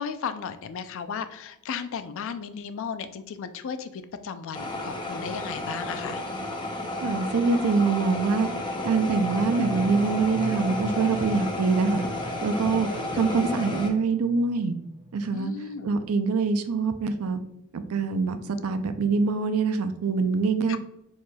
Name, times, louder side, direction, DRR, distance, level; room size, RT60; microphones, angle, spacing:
voice 1, 0.0-6.2 15.3-15.9 20.7-20.8, left 6 dB, 60° left, 10 dB, 0.4 m, -35 dB
sound 1, 4.5-13.9, left 2 dB, 20° left, 0.6 m, -32 dB
voice 2, 7.0-8.5 8.8-12.0 12.4-14.7 15.1-15.5 15.8-17.4 17.7-18.4 18.6-20.8, right 4 dB, 80° right, 9 dB, 0.4 m, -24 dB
sound 2, 8.8-14.7 15.0-15.5 15.8-16.2, left 2 dB, 25° right, 0.6 m, -42 dB
4.7 x 4.2 x 2.2 m, 0.80 s
head